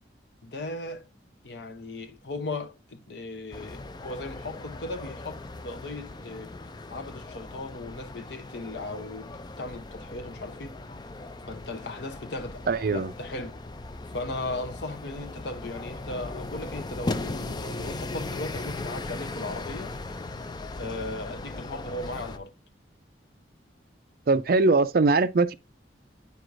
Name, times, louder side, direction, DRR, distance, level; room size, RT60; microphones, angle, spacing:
voice 1, 0.4-1.0 1.4-6.5 6.9-10.8 11.5-12.6 12.9-13.6 14.1-20.0 20.8-22.5, left 2 dB, 65° left, 0.7 m, -37 dB
sound 1, 3.5-22.4, left 2 dB, 20° left, 0.4 m, -38 dB
voice 2, 12.7-13.1 24.3-25.5, right 3 dB, 50° right, 0.4 m, -21 dB
9.7 x 4.7 x 2.5 m
head